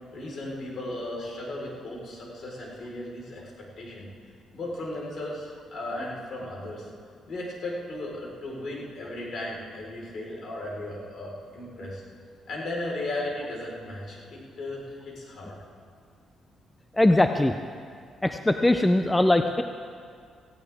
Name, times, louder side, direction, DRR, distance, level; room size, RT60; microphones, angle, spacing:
voice 1, 0.1-4.1 4.5-6.9 7.3-12.0 12.5-15.6, left 1 dB, 60° left, -3 dB, 4.2 m, -36 dB
voice 2, 16.9-17.5 18.2-19.6, left 1 dB, 10° left, 7 dB, 0.5 m, -21 dB
17.5 x 16.5 x 3.5 m, 2.1 s
cardioid pair, 90°, 0 cm